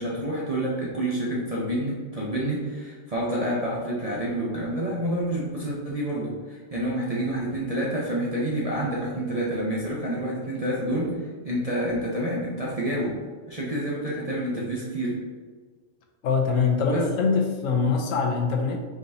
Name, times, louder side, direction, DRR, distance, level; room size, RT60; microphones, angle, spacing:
voice 1, 0.0-13.2 13.5-15.2 16.9-17.0, right 1 dB, 40° right, -5 dB, 0.6 m, -28 dB
voice 2, 16.2-18.8, left 5 dB, 70° left, 2 dB, 1.0 m, -23 dB
4.9 x 4.0 x 2.7 m, 1.5 s
omnidirectional pair, 1.4 m